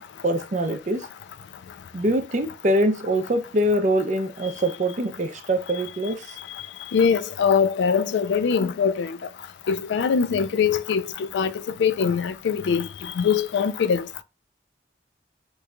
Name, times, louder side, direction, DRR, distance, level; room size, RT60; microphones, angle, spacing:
voice 1, 0.2-1.1 1.9-6.4, right 1 dB, 45° right, 0.5 m, -24 dB
voice 2, 6.9-9.2 9.7-11.0 11.3-11.5 11.8-14.0, left 6 dB, 85° left, 0.3 m, -22 dB
3.0 x 2.2 x 3.7 m
head